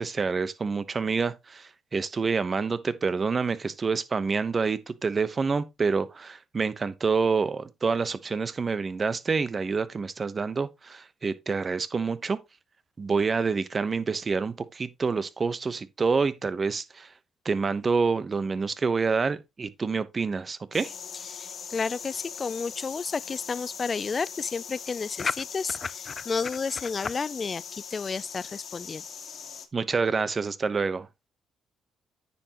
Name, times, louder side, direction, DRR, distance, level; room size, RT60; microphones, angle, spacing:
voice 1, 0.0-12.4 13.0-17.1 17.4-20.9 29.7-31.1, right 4 dB, 35° right, 0.9 m, -27 dB
sound 1, 20.7-29.7, left 7 dB, 60° left, 1.8 m, -41 dB
voice 2, 21.2-29.0, left 5 dB, 35° left, 0.4 m, -31 dB
9.7 x 7.0 x 3.0 m
cardioid pair, 90°, 0 cm